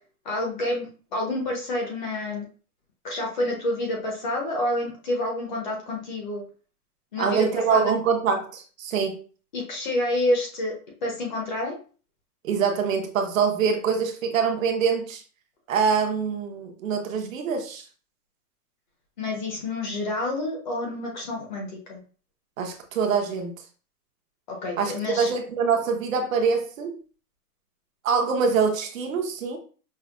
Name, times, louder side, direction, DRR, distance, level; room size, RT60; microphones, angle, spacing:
voice 1, 0.2-2.5 3.0-6.4 7.1-7.8 9.5-10.7 11.0-11.8 19.2-22.0 24.5-25.3, left 1 dB, 30° left, 0.7 m, -28 dB
voice 2, 7.2-9.2 12.4-15.2 15.7-17.8 22.6-23.6 24.8-27.0 28.0-29.6, right 6 dB, 60° right, 0.8 m, -24 dB
5.5 x 2.1 x 2.3 m
hypercardioid pair, 175°, 46 cm